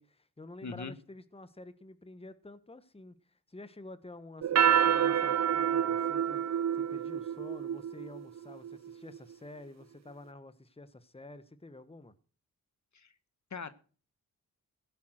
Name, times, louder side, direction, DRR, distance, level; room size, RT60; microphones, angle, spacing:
voice 1, 0.0-12.1, left 2 dB, 15° left, 1.3 m, -50 dB
voice 2, 0.6-0.9 12.9-13.1 13.5-13.7, left 5 dB, 50° left, 1.3 m, -40 dB
sound 1, 4.4-9.2, right 9 dB, 45° right, 0.5 m, -28 dB
16.5 x 8.3 x 6.5 m
cardioid pair, 50°, 37 cm